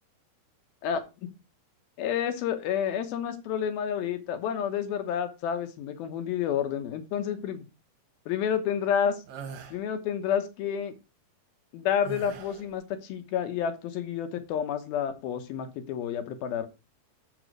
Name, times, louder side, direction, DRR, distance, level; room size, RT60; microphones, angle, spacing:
voice 1, 2.0-7.6 8.3-9.2 9.7-10.9 11.7-16.7, left 8 dB, 75° left, 8 dB, 3.0 m, -29 dB
sound 1, 9.3-9.8 12.0-12.7, right 6 dB, 60° right, 2.3 m, -41 dB
7.5 x 7.2 x 5.0 m, 0.28 s
omnidirectional pair, 4.4 m